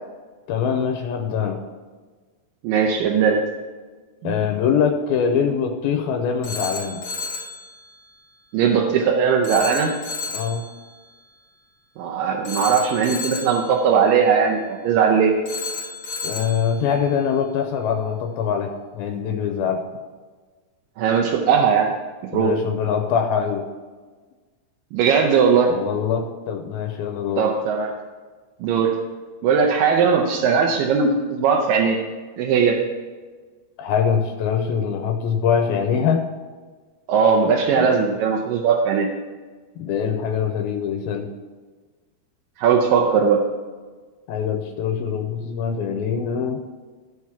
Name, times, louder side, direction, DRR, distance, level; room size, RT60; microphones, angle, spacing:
voice 1, 0.5-1.7 4.2-7.0 10.3-10.6 16.2-19.9 22.3-23.7 25.7-27.5 33.8-36.3 37.8-37.9 39.8-41.3 44.3-46.6, left 7 dB, 85° left, 5 dB, 2.4 m, -23 dB
voice 2, 2.6-3.4 4.2-4.4 8.5-9.9 12.0-15.4 21.0-21.9 22.3-22.5 24.9-25.7 27.4-27.9 28.6-28.9 29.4-32.0 32.4-32.8 37.1-39.1 42.6-43.4, right 6 dB, 75° right, 0 dB, 2.2 m, -19 dB
Telephone, 6.4-7.6 9.4-10.6 12.4-13.6 15.5-16.6, left 4 dB, 60° left, 1.5 m, -31 dB
13.5 x 4.8 x 5.8 m, 1.4 s
omnidirectional pair, 4.4 m